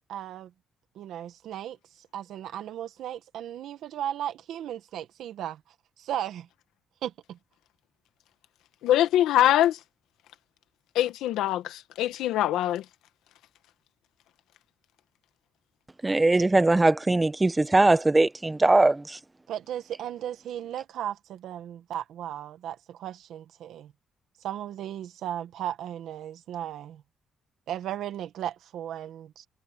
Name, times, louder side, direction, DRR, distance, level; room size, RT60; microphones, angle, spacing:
voice 1, 0.1-0.5 0.9-5.6 6.0-6.5 7.0-7.4 19.5-23.9 24.4-27.0 27.7-29.5, right 11 dB, 80° right, 1.4 m, -36 dB
voice 2, 8.8-9.8 10.9-12.8, left 13 dB, 90° left, 1.5 m, -23 dB
voice 3, 16.0-19.2, right 2 dB, 15° right, 1.3 m, -21 dB
cardioid pair, 90°, 0 cm